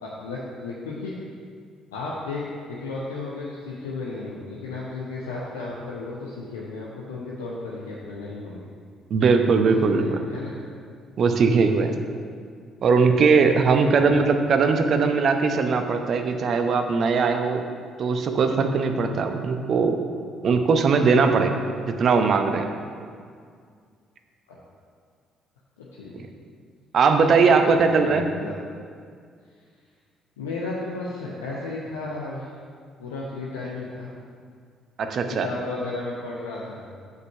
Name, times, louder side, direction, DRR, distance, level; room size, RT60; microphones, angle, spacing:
voice 1, 0.0-1.2 1.9-8.7 9.4-10.6 13.8-14.0 24.5-24.6 25.8-26.1 27.2-27.3 27.7-28.5 30.4-32.5 33.0-34.1 35.3-36.8, left 3 dB, 75° left, -5 dB, 0.9 m, -34 dB
voice 2, 9.1-10.2 11.2-11.9 12.8-17.6 18.0-20.0 20.4-21.5 21.9-22.7 26.9-28.3 35.0-35.5, right 5 dB, 50° right, 6 dB, 0.8 m, -20 dB
8.3 x 5.2 x 6.7 m, 2.1 s
figure-of-eight pair, 45°, 0 cm